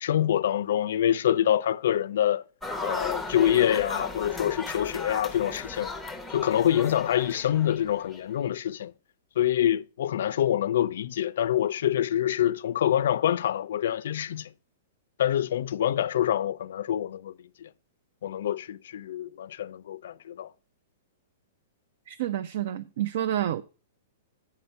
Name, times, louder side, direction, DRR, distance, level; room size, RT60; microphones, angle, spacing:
voice 1, 0.0-2.4 2.8-5.9 6.3-8.9 9.4-14.5 15.2-17.3 17.6-17.7 18.2-20.5, left 11 dB, 60° left, 0.4 m, -26 dB
sound 1, 2.6-8.2, left 3 dB, 5° left, 0.6 m, -36 dB
voice 2, 22.1-23.6, right 11 dB, 50° right, 0.5 m, -29 dB
8.5 x 5.7 x 5.3 m
hypercardioid pair, 175°, 0 cm